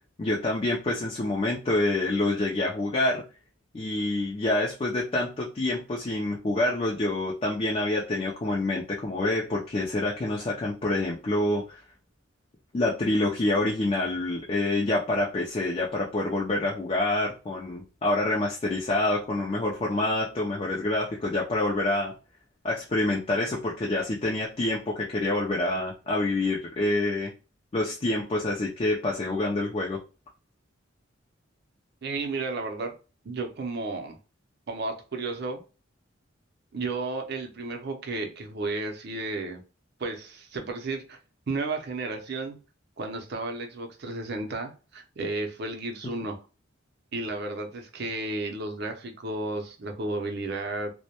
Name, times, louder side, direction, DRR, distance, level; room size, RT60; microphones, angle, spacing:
voice 1, 0.2-3.2 3.7-11.8 12.7-22.1 22.6-27.3 27.7-30.0, left 2 dB, 30° left, -2 dB, 0.4 m, -27 dB
voice 2, 32.0-32.9 33.2-34.2 34.7-35.6 36.7-39.6 40.0-41.2 41.5-42.6 43.0-46.4 47.1-50.9, right 3 dB, 55° right, 5 dB, 0.5 m, -33 dB
2.1 x 2.1 x 2.7 m, 0.33 s
head